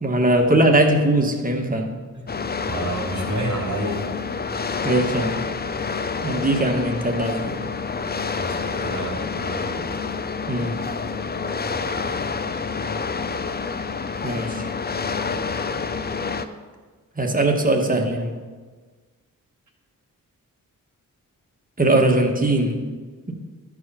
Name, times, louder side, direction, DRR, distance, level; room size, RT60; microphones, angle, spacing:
voice 1, 0.0-2.0 4.8-5.4 6.2-7.6 10.5-10.8 14.2-14.7 17.2-18.4 21.8-22.8, right 1 dB, 25° right, 3 dB, 1.4 m, -20 dB
sound 1, 2.3-16.5, left 5 dB, 30° left, 0.5 m, -28 dB
voice 2, 2.7-4.7 8.3-9.9 11.6-11.9, right 1 dB, 55° right, 0 dB, 2.6 m, -30 dB
13.0 x 4.8 x 5.6 m, 1.4 s
cardioid pair, 75°, 34 cm